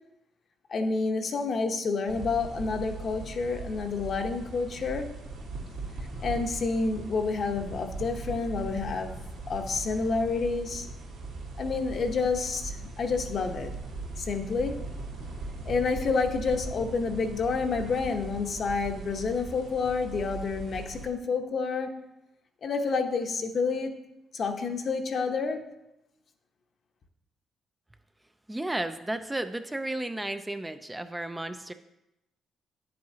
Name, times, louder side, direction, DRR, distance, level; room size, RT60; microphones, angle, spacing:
voice 1, 0.7-5.1 6.2-9.2 9.5-10.9 11.6-13.7 14.2-14.8 15.6-21.9 22.6-23.9 24.3-25.6, left 4 dB, 55° left, 5 dB, 0.9 m, -29 dB
sound 1, 2.1-21.1, right 3 dB, 85° right, 2.5 m, -39 dB
voice 2, 28.5-31.7, right 1 dB, 10° right, 8 dB, 0.4 m, -33 dB
10.0 x 7.7 x 2.8 m, 0.89 s
cardioid pair, 90°, 0 cm